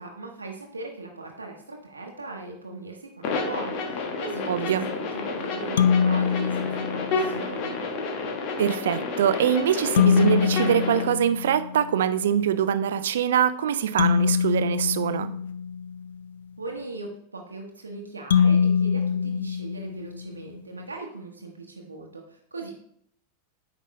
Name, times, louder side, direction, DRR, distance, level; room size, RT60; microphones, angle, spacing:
voice 1, 0.0-7.8 16.6-22.7, right 3 dB, 75° right, 2 dB, 1.0 m, -39 dB
sound 1, 3.2-11.0, left 4 dB, 40° left, 1.4 m, -30 dB
voice 2, 4.5-4.9 8.6-15.3, right 9 dB, 60° right, 13 dB, 0.5 m, -23 dB
sound 2, 5.8-7.4 10.0-12.0 14.0-16.1 18.3-20.4, left 7 dB, 65° left, 0.4 m, -23 dB
9.0 x 5.4 x 3.2 m, 0.68 s
figure-of-eight pair, 90°, 0 cm